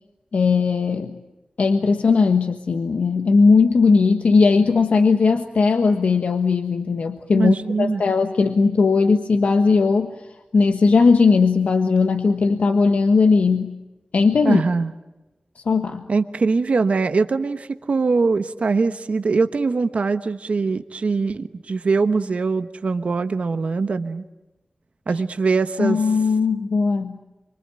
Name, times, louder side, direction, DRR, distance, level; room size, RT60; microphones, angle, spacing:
voice 1, 0.3-1.2 1.6-10.1 10.5-13.7 14.1-14.6 15.6-16.0 25.8-27.2, left 4 dB, 85° left, 5 dB, 1.5 m, -18 dB
voice 2, 7.4-8.0 14.4-14.9 16.1-24.2 25.1-26.0, right 4 dB, 70° right, 9 dB, 1.1 m, -22 dB
26.5 x 25.5 x 8.9 m, 1.1 s
wide cardioid pair, 90°, 2 cm